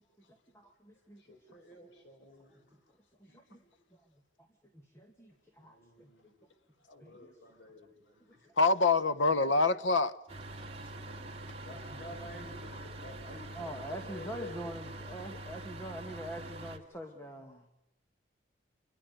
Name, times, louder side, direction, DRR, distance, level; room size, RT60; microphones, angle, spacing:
voice 1, 0.3-1.2 1.5-1.6 3.2-3.6 4.4-4.5 4.7-6.1 7.0-7.4 8.4-8.5 9.4-9.5 11.1-12.0 12.3-12.4 13.0-13.2 13.5-17.7, right 1 dB, 15° left, 2.3 m, -45 dB
voice 2, 1.2-2.8 3.3-3.6 5.6-6.5 6.9-8.5 11.6-14.6, left 2 dB, 60° left, 5.1 m, -51 dB
voice 3, 8.6-10.1, left 3 dB, 85° left, 1.2 m, -25 dB
sound 1, 10.3-16.8, right 1 dB, 30° right, 2.8 m, -44 dB
28.5 x 23.0 x 6.8 m
head